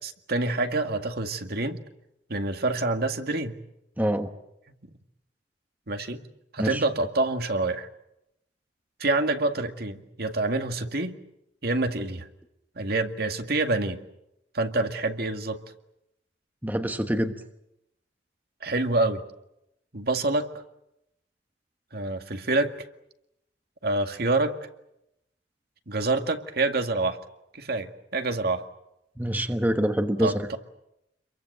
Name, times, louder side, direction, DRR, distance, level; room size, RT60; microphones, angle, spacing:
voice 1, 0.0-1.8 2.3-3.6 5.9-6.2 6.5-7.9 9.0-11.2 11.6-12.3 12.8-14.0 14.5-15.6 18.6-19.2 19.9-20.6 21.9-22.7 23.8-24.6 25.9-27.2 27.5-28.6 30.2-30.6, right 2 dB, 60° right, 6 dB, 2.0 m, -27 dB
voice 2, 4.0-4.3 6.6-6.8 16.6-17.3 29.2-30.5, equal, 10° right, 7 dB, 1.2 m, -25 dB
28.0 x 23.0 x 7.9 m, 0.84 s
head